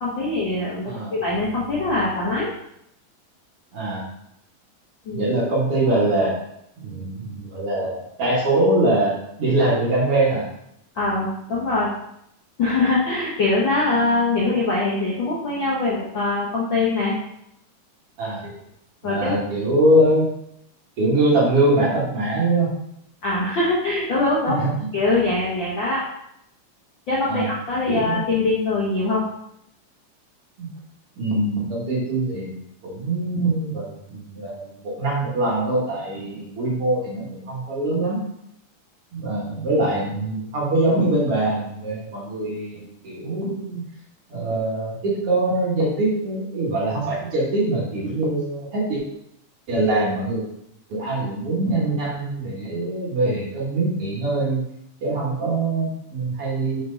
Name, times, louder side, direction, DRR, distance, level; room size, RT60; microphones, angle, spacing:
voice 1, 0.0-2.5 5.0-5.3 10.9-11.9 12.6-17.1 18.4-18.6 19.0-19.3 23.2-24.6 24.9-26.0 27.1-29.2, left 2 dB, 60° left, -6 dB, 1.3 m, -23 dB
voice 2, 0.8-1.1 3.7-4.1 5.1-6.4 6.8-10.5 18.2-18.5 19.0-20.3 21.0-22.7 24.5-24.9 27.3-27.5 27.9-28.2 30.6-30.7 31.2-38.2 39.1-43.8 44.3-49.0 49.7-50.4 50.9-54.6 55.0-56.8, right 2 dB, 50° right, -5 dB, 2.1 m, -23 dB
6.5 x 4.6 x 3.9 m, 0.77 s
omnidirectional pair, 3.6 m